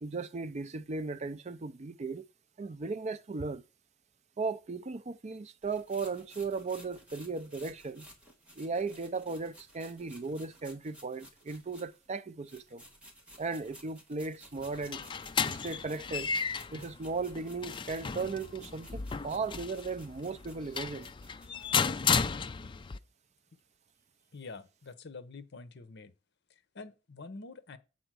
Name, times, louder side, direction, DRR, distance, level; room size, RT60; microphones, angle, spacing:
voice 1, 0.0-2.3 2.6-3.6 4.4-8.1 8.6-12.8 13.4-15.1 15.4-16.3 16.7-21.1, right 4 dB, 35° right, 0.5 m, -36 dB
sound 1, 5.6-12.1 12.4-21.7, equal, 5° right, 2.0 m, -56 dB
sound 2, 14.6-23.0, left 6 dB, 25° left, 0.3 m, -34 dB
voice 2, 24.3-26.1 26.5-27.8, left 3 dB, 60° left, 0.8 m, -47 dB
7.9 x 4.0 x 6.2 m
head